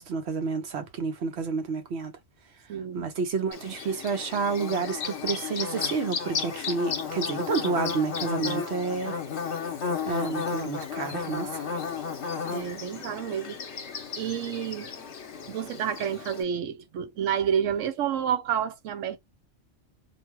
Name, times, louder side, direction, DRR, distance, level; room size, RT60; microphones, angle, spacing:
voice 1, 0.0-2.1 2.9-9.1 10.1-11.6, right 5 dB, 65° right, 1.0 m, -30 dB
voice 2, 2.7-3.1 12.5-13.6 14.2-14.9 15.5-19.2, right 8 dB, 90° right, 1.0 m, -29 dB
Bird / Buzz, 3.5-16.4, left 6 dB, 65° left, 1.1 m, -33 dB
2.6 x 2.2 x 3.0 m
omnidirectional pair, 1.3 m